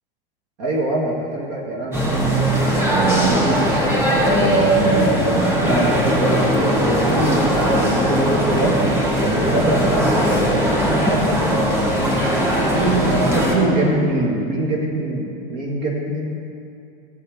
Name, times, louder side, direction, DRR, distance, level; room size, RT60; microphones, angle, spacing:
voice 1, 0.6-2.3 2.7-3.6 4.2-8.8 9.2-10.7 11.0-11.6 12.2-16.3, right 2 dB, 45° right, -2 dB, 2.1 m, -22 dB
sound 1, 1.9-13.6, equal, 5° right, 3.5 m, -19 dB
16.5 x 7.0 x 7.2 m, 2.5 s
figure-of-eight pair, 85°, 29 cm